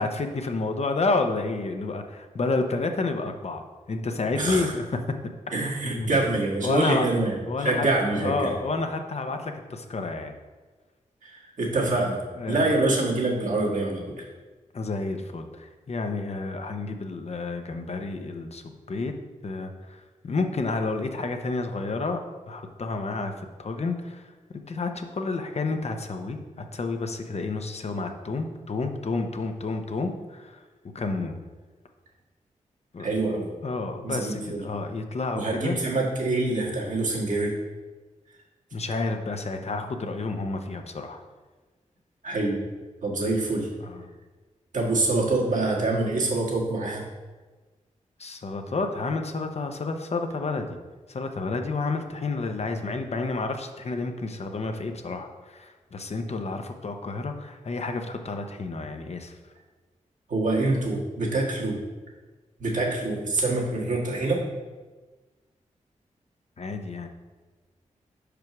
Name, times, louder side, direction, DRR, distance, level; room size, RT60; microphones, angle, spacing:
voice 1, 0.0-5.0 5.8-6.2 6.6-7.1 7.5-7.9 8.2-10.4 12.3-12.7 14.7-19.1 19.4-22.2 22.5-24.3 24.7-30.6 30.9-31.4 32.9-33.1 33.6-35.8 38.7-41.2 43.8-44.0 48.2-50.8 51.1-59.3 66.6-67.1, left 3 dB, 55° left, 5 dB, 0.8 m, -30 dB
voice 2, 4.3-4.7 5.5-8.5 11.2-14.2 33.0-33.5 34.0-34.6 35.4-37.6 42.2-42.7 43.0-43.7 44.7-47.0 60.3-61.8 62.6-64.4, right 2 dB, 75° right, -3 dB, 1.8 m, -25 dB
5.0 x 4.7 x 5.9 m, 1.3 s
cardioid pair, 60°, 13 cm